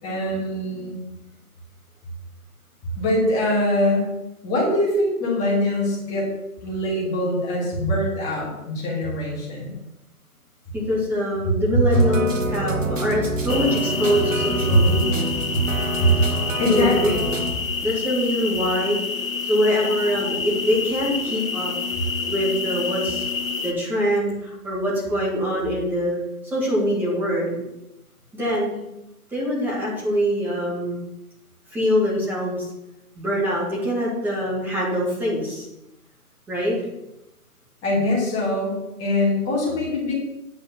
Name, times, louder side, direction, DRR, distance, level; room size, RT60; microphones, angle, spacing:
voice 1, 0.0-0.9 2.9-4.1 4.4-6.3 6.6-9.8 14.7-14.8 16.0-16.1 16.6-17.2 37.8-40.1, left 1 dB, 15° left, -3 dB, 2.6 m, -23 dB
voice 2, 10.7-15.3 16.7-17.1 17.8-19.0 19.4-21.7 22.3-23.3 23.6-26.2 26.4-27.6 28.3-28.7 29.3-31.0 31.7-32.7 33.2-35.7 36.5-36.8, equal, 5° right, -6 dB, 1.9 m, -24 dB
sound 1, 11.9-17.5, right 2 dB, 55° right, 1.6 m, -27 dB
sound 2, 13.5-23.7, left 5 dB, 60° left, 1.6 m, -28 dB
9.6 x 5.0 x 6.1 m, 0.90 s
figure-of-eight pair, 150°, 46 cm